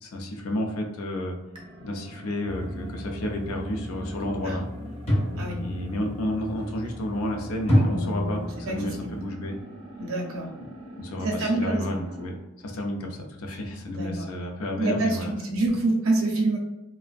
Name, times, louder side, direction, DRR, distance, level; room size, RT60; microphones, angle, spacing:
voice 1, 0.0-1.4 1.8-4.6 5.6-9.6 11.0-12.4 12.6-15.3, left 1 dB, 85° left, 2 dB, 0.5 m, -31 dB
sound 1, 1.5-12.4, right 1 dB, 25° right, 0.4 m, -44 dB
sound 2, 2.5-9.2, equal, 30° left, 0.7 m, -30 dB
voice 2, 8.6-9.1 10.0-10.5 11.2-12.0 13.9-14.3 14.8-16.6, right 2 dB, 70° right, 0 dB, 0.6 m, -26 dB
2.5 x 2.0 x 2.4 m, 1.0 s
head